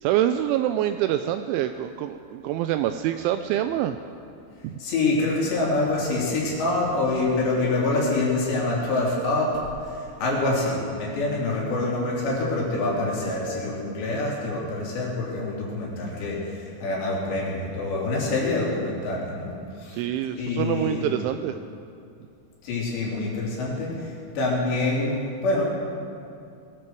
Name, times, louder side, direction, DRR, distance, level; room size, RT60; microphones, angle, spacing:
voice 1, 0.0-4.0 4.6-4.8 19.9-21.6, right 12 dB, 85° right, 8 dB, 2.7 m, -25 dB
voice 2, 4.8-20.0 20.4-21.1 22.6-25.6, left 2 dB, 60° left, -4 dB, 5.1 m, -26 dB
21.0 x 14.5 x 4.7 m, 2.5 s
omnidirectional pair, 5.8 m